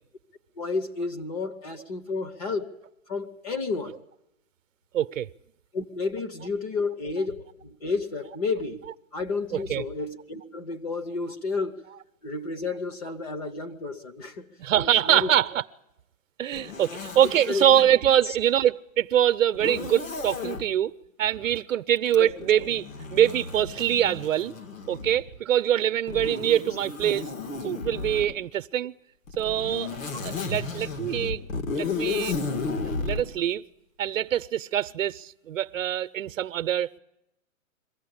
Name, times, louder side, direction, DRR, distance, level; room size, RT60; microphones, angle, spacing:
voice 1, 0.6-2.7 3.1-4.0 5.7-8.8 9.1-11.8 12.2-15.3 17.2-17.7 18.2-18.4 22.1-22.3, left 4 dB, 25° left, 6 dB, 0.9 m, -31 dB
voice 2, 4.9-5.3 9.5-9.8 14.6-15.6 16.4-20.9 21.2-24.5 24.9-27.2 27.6-28.9 29.4-31.4 31.7-32.4 32.8-33.6 34.0-37.0, right 11 dB, 65° right, 15 dB, 0.8 m, -24 dB
Zipper (clothing), 16.5-17.9 19.5-20.6 22.1-25.3 26.1-28.3 29.3-33.3, left 4 dB, 70° left, 2.7 m, -33 dB
23.0 x 15.5 x 8.7 m, 0.89 s
hypercardioid pair, 160°, 41 cm